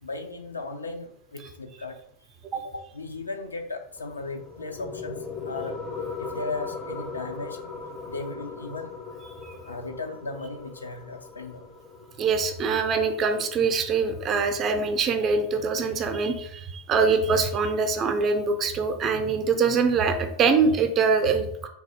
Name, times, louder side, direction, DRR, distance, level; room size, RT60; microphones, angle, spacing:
voice 1, 0.0-2.0 2.5-5.7 6.2-7.6 8.1-8.9 9.7-11.7, left 3 dB, 75° left, 5 dB, 0.5 m, -36 dB
sound 1, 4.0-15.0, left 4 dB, 15° left, 0.6 m, -39 dB
voice 2, 12.2-21.7, right 4 dB, 30° right, 7 dB, 0.5 m, -24 dB
3.3 x 2.6 x 4.2 m, 0.70 s
figure-of-eight pair, 90°, 0 cm